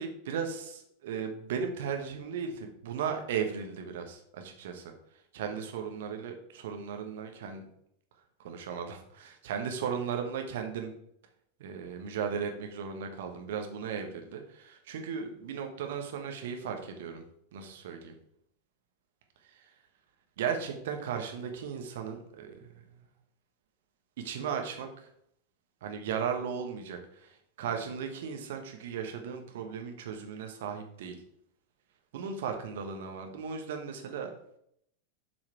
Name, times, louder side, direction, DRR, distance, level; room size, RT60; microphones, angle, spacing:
voice 1, 0.0-4.9 5.3-7.6 8.4-10.9 11.6-17.2 17.5-18.1 19.4-19.7 20.4-22.6 22.9-23.0 24.2-25.1 25.8-31.2 32.1-34.3, right 7 dB, 55° right, 4 dB, 1.3 m, -36 dB
7.5 x 4.7 x 4.6 m, 0.72 s
figure-of-eight pair, 90°, 0 cm